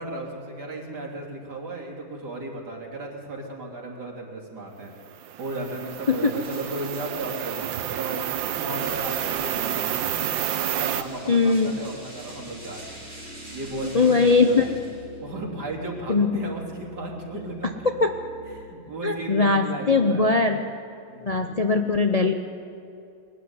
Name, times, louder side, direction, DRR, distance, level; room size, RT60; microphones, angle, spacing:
voice 1, 0.0-4.9 5.4-8.2 8.6-10.3 10.6-12.9 13.5-14.8 15.2-17.9 18.6-20.3 21.1-21.5, right 2 dB, 55° right, -1 dB, 3.6 m, -35 dB
sound 1, 5.1-11.0, right 11 dB, 80° right, 1.5 m, -29 dB
sound 2, 5.7-15.3, right 1 dB, 20° right, 4.5 m, -46 dB
sound 3, 8.4-18.6, equal, 5° left, 4.9 m, -46 dB
voice 2, 11.3-11.8 13.9-14.7 16.1-16.3 18.0-18.1 19.0-20.6 21.2-22.3, left 4 dB, 90° left, 5 dB, 0.3 m, -20 dB
21.5 x 12.5 x 9.7 m, 2.6 s
omnidirectional pair, 2.1 m